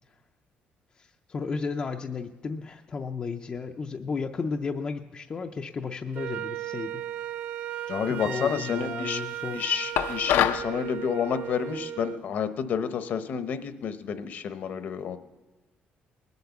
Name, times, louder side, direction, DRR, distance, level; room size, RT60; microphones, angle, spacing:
voice 1, 1.0-7.0 8.1-9.6, left 5 dB, 25° left, 4 dB, 0.5 m, -33 dB
Wind instrument woodwind instrument, 6.1-12.2, right 11 dB, 60° right, 0.5 m, -36 dB
voice 2, 7.9-9.2 9.5-15.2, left 7 dB, 50° left, 10 dB, 0.8 m, -30 dB
sound 1, 10.0-10.7, left 10 dB, 80° left, 0.6 m, -24 dB
20.0 x 8.0 x 7.1 m, 1.3 s
cardioid pair, 165°, 4 cm